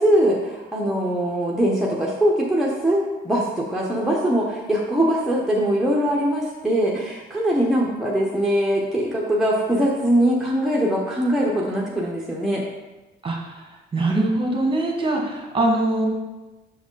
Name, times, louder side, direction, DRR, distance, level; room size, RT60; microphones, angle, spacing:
voice 1, 0.0-12.6, right 1 dB, ahead, -3 dB, 1.0 m, -22 dB
voice 2, 13.2-13.6 13.9-16.1, right 2 dB, 25° right, 0 dB, 1.6 m, -22 dB
6.2 x 4.8 x 3.9 m, 1.1 s
cardioid pair, 90°, 20 cm